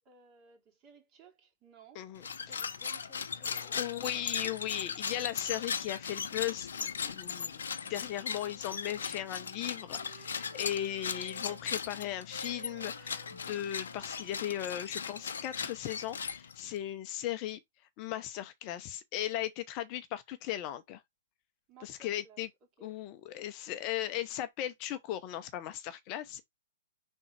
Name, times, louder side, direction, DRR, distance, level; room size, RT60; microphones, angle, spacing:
voice 1, 0.0-4.5 21.7-22.4 22.8-23.1, right 3 dB, 30° right, 2.5 m, -59 dB
sound 1, 2.2-16.8, left 6 dB, 75° left, 0.8 m, -38 dB
voice 2, 3.4-17.6 18.0-21.0 21.8-22.5 22.8-26.4, left 12 dB, 35° left, 0.8 m, -37 dB
Wind instrument woodwind instrument, 7.7-11.6 12.3-15.8, right 5 dB, 70° right, 1.0 m, -55 dB
5.4 x 3.9 x 4.5 m
hypercardioid pair, 130°, 0 cm